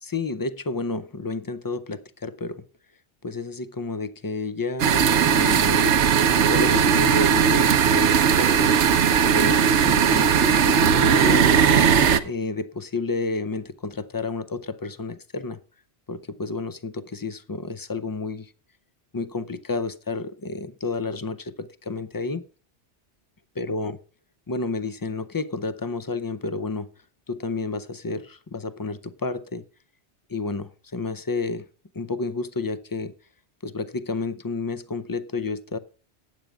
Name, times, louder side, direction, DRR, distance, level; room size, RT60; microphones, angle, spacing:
voice 1, 0.0-2.6 3.2-6.0 6.5-8.8 9.2-11.7 12.2-15.6 16.1-18.5 19.1-22.4 23.6-24.0 24.5-26.9 27.3-29.6 30.3-31.7 31.9-33.1 33.6-35.8, left 3 dB, 30° left, 0.4 m, -30 dB
sound 1, 4.8-12.2, right 7 dB, 80° right, 1.0 m, -18 dB
19.5 x 9.0 x 2.4 m
omnidirectional pair, 1.2 m